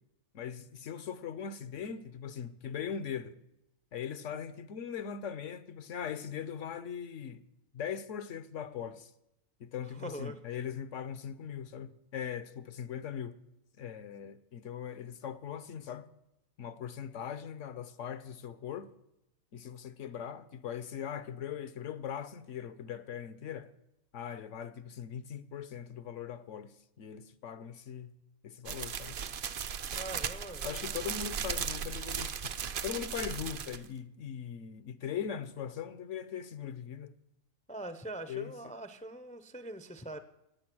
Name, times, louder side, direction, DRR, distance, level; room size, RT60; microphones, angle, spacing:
voice 1, 0.3-3.4 3.9-7.4 7.7-9.1 9.6-13.4 13.8-16.1 16.6-18.9 19.5-23.7 24.1-28.1 28.4-29.2 30.6-37.1 38.3-38.5, left 8 dB, 65° left, 1.1 m, -40 dB
voice 2, 9.8-10.4 29.9-30.8 37.7-40.2, right 1 dB, 10° left, 0.4 m, -43 dB
sound 1, 28.7-33.9, right 7 dB, 55° right, 0.6 m, -37 dB
18.0 x 8.4 x 6.1 m
omnidirectional pair, 1.4 m